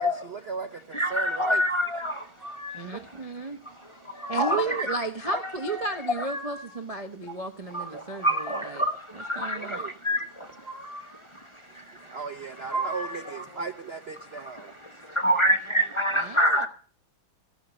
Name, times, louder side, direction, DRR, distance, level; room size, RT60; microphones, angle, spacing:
voice 1, 0.0-1.6 2.8-3.0 4.5-4.6 9.5-9.9 12.1-14.7, right 5 dB, 80° right, 0.5 m, -36 dB
voice 2, 0.9-3.1 3.6-5.0 5.3-6.0 7.7-12.2 12.8-12.9 13.2-13.6 14.4-16.7, equal, 20° left, 1.0 m, -28 dB
sound 1, 2.4-3.0 3.8-4.8 5.8-6.8 7.7-8.9 10.4-11.3 12.4-13.4, right 1 dB, 10° right, 2.2 m, -37 dB
voice 3, 2.7-3.6 4.3-8.8 9.1-9.8 16.2-16.7, right 3 dB, 35° right, 0.6 m, -33 dB
16.0 x 11.5 x 5.2 m
omnidirectional pair, 2.2 m